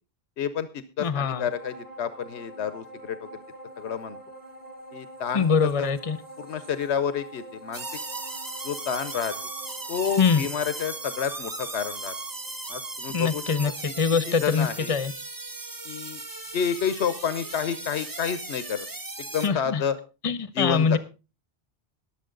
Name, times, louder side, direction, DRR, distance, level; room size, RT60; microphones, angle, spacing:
voice 1, 0.4-0.7 1.0-3.4 3.8-4.2 4.9-5.9 6.4-7.8 8.6-9.3 9.9-12.1 12.7-13.4 14.3-14.9 15.8-16.2 16.5-18.9 19.2-20.0 20.5-21.0, left 7 dB, 85° left, 1.1 m, -29 dB
voice 2, 1.0-1.5 5.3-6.2 10.2-10.4 13.1-13.7 14.0-15.1 19.4-19.8 20.2-21.0, left 5 dB, 35° left, 0.8 m, -23 dB
sound 1, 1.1-14.8 15.2-15.3, right 1 dB, 35° right, 2.2 m, -46 dB
sound 2, 7.7-19.5, right 2 dB, 20° right, 0.8 m, -37 dB
21.5 x 7.4 x 3.8 m
omnidirectional pair, 1.1 m